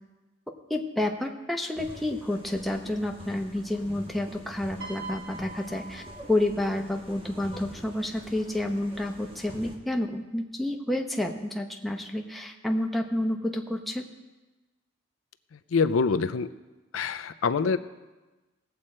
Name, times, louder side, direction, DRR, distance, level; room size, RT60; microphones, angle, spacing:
voice 1, 0.7-6.0 6.3-14.0, left 1 dB, ahead, 2 dB, 0.8 m, -29 dB
sound 1, 1.8-9.8, equal, 25° right, 1.3 m, -46 dB
Piano, 4.8-7.2 8.2-8.5, right 3 dB, 50° right, 1.8 m, -43 dB
voice 2, 15.5-16.5 16.9-17.8, left 5 dB, 75° left, 11 dB, 0.4 m, -25 dB
18.0 x 7.8 x 4.3 m, 1.2 s
head